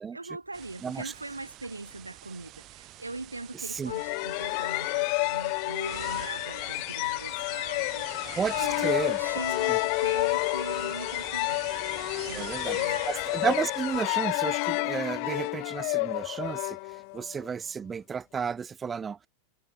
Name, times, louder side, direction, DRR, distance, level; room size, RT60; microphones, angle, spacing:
voice 1, 0.1-8.1 8.5-11.7 12.2-13.1, right 2 dB, 80° right, 1.4 m, -41 dB
sound 1, 0.5-14.0, right 16 dB, 35° right, 3.2 m, -46 dB
voice 2, 0.8-1.1 3.5-3.9 8.4-9.2 9.7-9.8 12.3-19.3, right 6 dB, 20° right, 0.8 m, -32 dB
sound 2, 3.9-17.4, left 40 dB or more, 45° left, 0.6 m, -30 dB
figure-of-eight pair, 90°, 0 cm